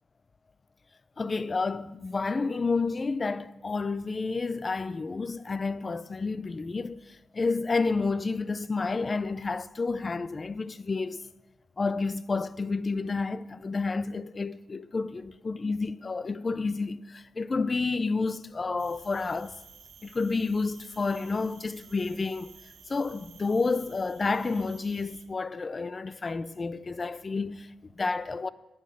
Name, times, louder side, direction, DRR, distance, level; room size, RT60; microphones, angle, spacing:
voice 1, 1.2-11.2 11.8-19.6 20.0-22.5 22.9-28.5, left 4 dB, 25° left, 0.4 m, -30 dB
sound 1, 18.8-25.2, right 6 dB, 55° right, 1.0 m, -53 dB
10.0 x 8.7 x 6.5 m
cardioid pair, 125°, 0 cm